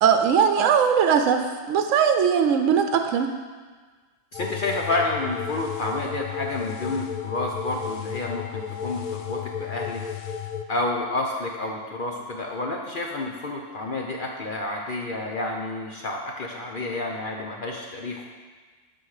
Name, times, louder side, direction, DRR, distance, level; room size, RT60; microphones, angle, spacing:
voice 1, 0.0-3.3, right 7 dB, 80° right, 6 dB, 1.0 m, -20 dB
sound 1, 4.3-10.6, left 8 dB, 80° left, 0.4 m, -33 dB
voice 2, 4.3-10.0 10.7-18.2, left 2 dB, 50° left, 0 dB, 0.8 m, -30 dB
12.5 x 4.4 x 4.8 m, 1.4 s
omnidirectional pair, 1.4 m